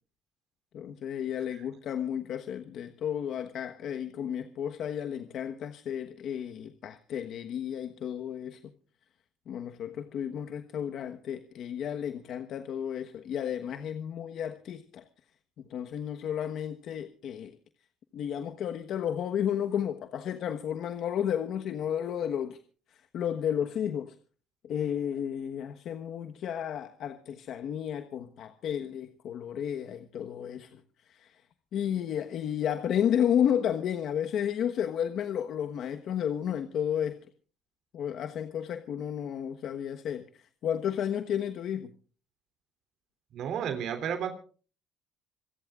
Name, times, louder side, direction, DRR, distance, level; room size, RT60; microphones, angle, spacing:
voice 1, 0.7-8.6 9.5-15.1 15.6-17.6 18.1-22.6 22.9-24.1 24.6-30.7 31.1-31.4 31.7-37.2 37.9-41.9, left 9 dB, 60° left, 1.2 m, -32 dB
voice 2, 43.3-44.3, right 8 dB, 60° right, 3.2 m, -32 dB
26.5 x 17.5 x 2.4 m
cardioid pair, 105°, 0 cm